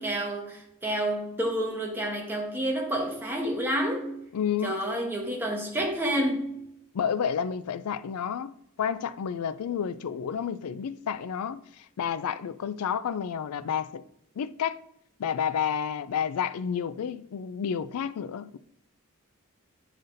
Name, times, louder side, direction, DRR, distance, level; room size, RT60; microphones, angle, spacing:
voice 1, 0.0-4.1 4.6-6.5, right 1 dB, 10° right, 1.0 m, -29 dB
voice 2, 4.3-4.8 6.9-14.0 14.4-14.8 15.2-18.6, left 7 dB, 90° left, 0.4 m, -30 dB
9.8 x 4.0 x 2.6 m
head